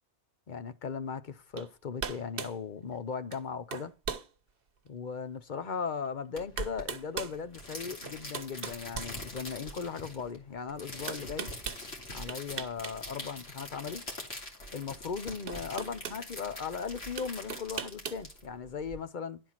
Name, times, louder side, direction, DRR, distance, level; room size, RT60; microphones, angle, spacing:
voice 1, 0.5-3.9 4.9-11.5 12.1-14.0 14.7-19.4, left 6 dB, 50° left, 0.9 m, -37 dB
sound 1, 1.6-1.7 2.0-2.6 3.3-3.5 3.7-4.3 4.9-5.0 6.1-6.2 6.6-7.4 8.0-9.7 11.1-11.8 12.3-13.0 13.3-13.4 14.8-14.9 15.5-16.2 17.2-18.2, right 6 dB, 55° right, 1.0 m, -38 dB
sound 2, 6.4-19.0, left 1 dB, 70° left, 2.6 m, -44 dB
11.0 x 4.5 x 5.8 m
omnidirectional pair, 1.1 m